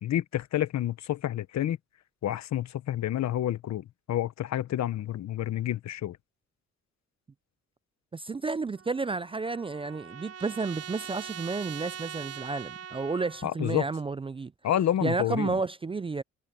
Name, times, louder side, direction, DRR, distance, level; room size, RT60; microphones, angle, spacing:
voice 1, 0.0-1.8 2.2-6.2 13.4-13.9 14.6-15.6, left 12 dB, 65° left, 1.1 m, -29 dB
voice 2, 8.1-14.5 15.0-16.2, right 4 dB, 20° right, 0.4 m, -31 dB
Trumpet, 8.8-13.5, right 9 dB, 50° right, 1.1 m, -42 dB
cardioid pair, 90°, 30 cm